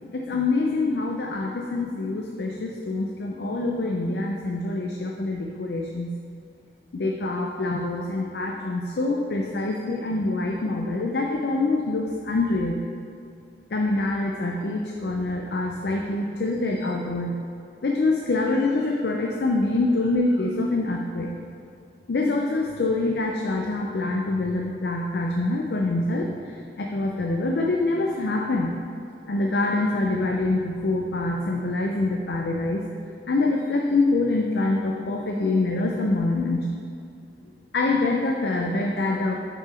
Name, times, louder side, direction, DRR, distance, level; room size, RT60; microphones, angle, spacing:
voice 1, 0.1-6.1 6.9-12.8 13.7-17.4 17.8-21.3 22.1-26.3 26.8-28.8 29.3-32.8 33.3-36.7 37.7-39.3, left 2 dB, 70° left, 0 dB, 0.5 m, -25 dB
5.9 x 4.7 x 5.0 m, 2.5 s
head